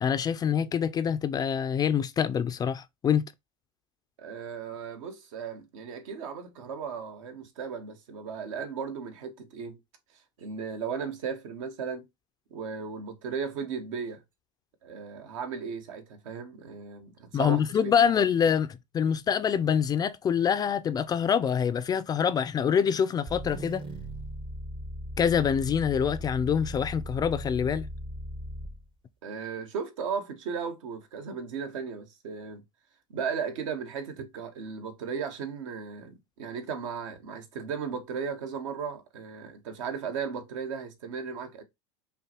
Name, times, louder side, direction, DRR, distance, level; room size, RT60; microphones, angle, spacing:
voice 1, 0.0-3.3 17.3-23.8 25.2-27.9, left 7 dB, 25° left, 0.3 m, -25 dB
voice 2, 4.2-9.8 10.4-12.1 12.5-14.2 14.8-18.2 29.2-32.6 33.1-41.6, right 6 dB, 75° right, 1.0 m, -36 dB
sound 1, 23.3-28.9, equal, 30° right, 0.7 m, -38 dB
5.5 x 2.2 x 2.9 m
hypercardioid pair, 105°, 17 cm